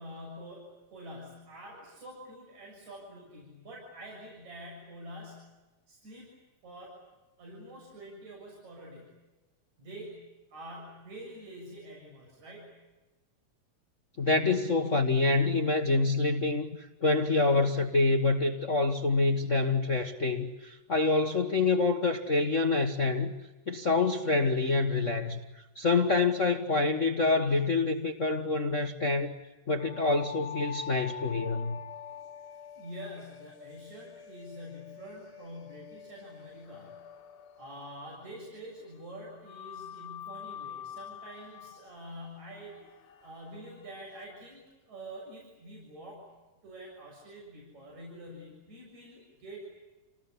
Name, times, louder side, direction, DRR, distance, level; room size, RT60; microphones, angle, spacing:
voice 1, 0.0-5.5 5.9-6.3 6.6-7.0 7.4-9.1 9.8-12.7 32.8-37.0 37.6-42.9 43.2-46.3 46.6-49.6, equal, 70° right, -2 dB, 8.5 m, -46 dB
voice 2, 14.2-23.3 23.7-25.4 25.7-29.3 29.7-31.8, left 3 dB, 40° left, 4 dB, 1.2 m, -26 dB
sound 1, 29.8-38.6 39.5-44.2, left 9 dB, 85° left, 3.0 m, -46 dB
29.0 x 19.5 x 9.9 m, 1.1 s
omnidirectional pair, 3.3 m